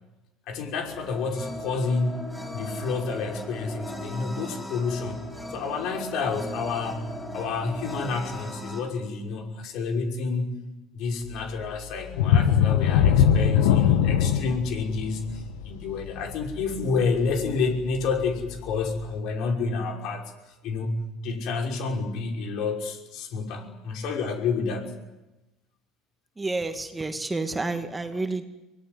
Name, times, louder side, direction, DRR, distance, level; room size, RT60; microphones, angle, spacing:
voice 1, 0.5-2.2 2.5-5.2 5.5-10.5 10.9-20.3 20.6-24.9, left 4 dB, 65° left, 2 dB, 5.8 m, -29 dB
sound 1, 0.8-8.8, left 1 dB, 10° left, 7.5 m, -38 dB
sound 2, 12.1-17.6 18.0-18.2 18.7-18.8, left 8 dB, 80° left, 1.6 m, -21 dB
voice 2, 26.4-28.4, right 3 dB, 15° right, 6 dB, 2.4 m, -29 dB
24.5 x 18.5 x 9.7 m, 1.0 s
supercardioid pair, 85°, 0 cm